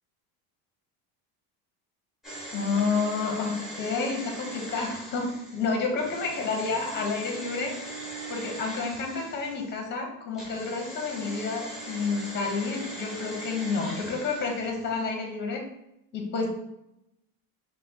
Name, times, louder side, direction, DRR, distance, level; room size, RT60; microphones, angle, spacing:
sound 1, 2.2-9.8 10.3-15.0 15.3-15.4, right 1 dB, ahead, 0.9 m, -40 dB
voice 1, 2.5-7.9 8.3-15.6 16.1-16.5, left 4 dB, 25° left, 2 dB, 0.8 m, -30 dB
4.0 x 2.2 x 3.5 m, 0.83 s
cardioid pair, 140°, 42 cm